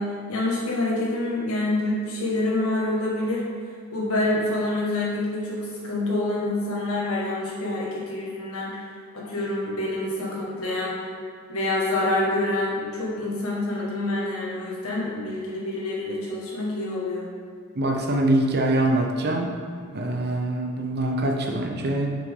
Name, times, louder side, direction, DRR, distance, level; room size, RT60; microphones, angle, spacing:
voice 1, 0.0-3.4 3.9-11.0 11.5-17.2, left 2 dB, 80° left, -5 dB, 1.9 m, -27 dB
voice 2, 17.7-19.5 19.8-22.1, right 1 dB, 50° right, 2 dB, 0.8 m, -24 dB
6.7 x 5.9 x 3.8 m, 2.2 s
head